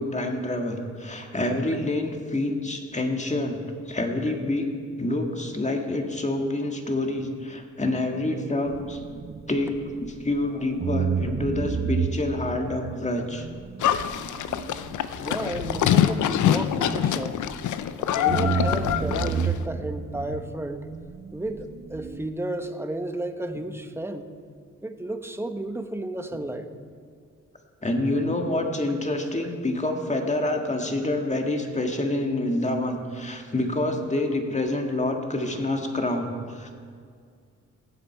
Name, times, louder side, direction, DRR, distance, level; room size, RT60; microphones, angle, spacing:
voice 1, 0.0-3.6 3.9-4.6 5.0-9.0 9.5-9.7 10.0-13.5 27.8-36.8, left 2 dB, 25° left, 3 dB, 1.8 m, -27 dB
sound 1, 8.6-10.4 10.8-17.9 18.3-22.3, right 6 dB, 35° right, 0.5 m, -31 dB
Livestock farm animals working animals, 13.8-19.6, left 10 dB, 80° left, 0.6 m, -24 dB
voice 2, 15.2-17.4 18.0-20.9 21.3-24.3 24.8-26.7, right 1 dB, 10° right, 8 dB, 0.9 m, -33 dB
17.5 x 7.8 x 4.6 m, 2.2 s
cardioid pair, 65°, 30 cm